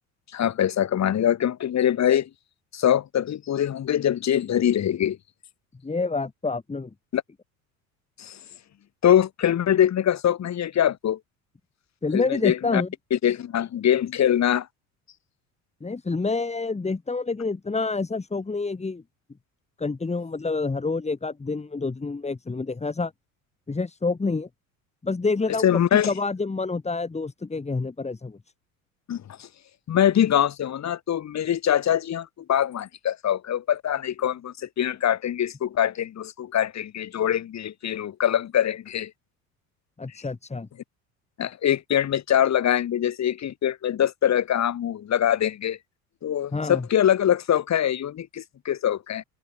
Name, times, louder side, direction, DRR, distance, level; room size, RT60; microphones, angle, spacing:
voice 1, 0.3-2.3 2.7-5.2 7.1-7.2 8.2-8.4 9.0-11.2 12.1-12.8 13.1-14.7 25.6-26.1 29.1-29.5 29.9-39.1 41.4-45.8 46.2-49.2, left 10 dB, 40° left, 3.4 m, -23 dB
voice 2, 5.8-6.9 12.0-12.9 15.8-19.0 19.8-23.1 23.7-24.5 25.0-28.4 40.0-40.7 46.5-46.8, left 3 dB, 15° left, 2.9 m, -28 dB
hypercardioid pair, 65°, 41 cm